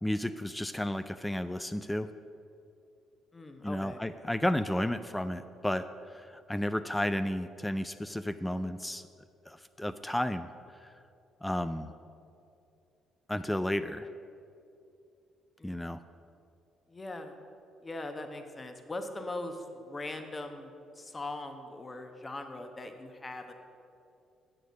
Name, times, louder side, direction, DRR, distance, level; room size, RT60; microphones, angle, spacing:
voice 1, 0.0-2.1 3.6-9.0 9.5-10.5 10.8-10.9 11.4-11.9 13.3-14.1 15.6-16.0, left 1 dB, 10° left, 11 dB, 0.3 m, -32 dB
voice 2, 3.3-4.0 15.6-15.9 16.9-17.4 17.8-23.5, left 2 dB, 30° left, 6 dB, 1.0 m, -41 dB
7.9 x 6.6 x 6.2 m, 2.6 s
hypercardioid pair, 50°, 0 cm